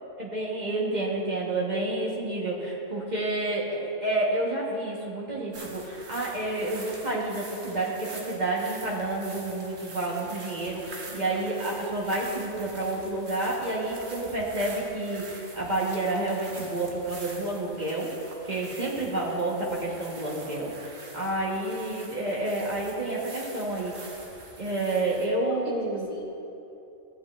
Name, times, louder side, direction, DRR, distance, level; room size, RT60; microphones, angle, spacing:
voice 1, 0.2-18.1 18.5-23.9 24.6-26.1, right 2 dB, 35° right, -4 dB, 1.3 m, -29 dB
sound 1, 5.5-25.3, right 2 dB, 90° right, 1.5 m, -45 dB
voice 2, 25.4-26.3, left 3 dB, 60° left, -2 dB, 1.4 m, -44 dB
15.0 x 8.1 x 2.4 m, 2.8 s
omnidirectional pair, 1.3 m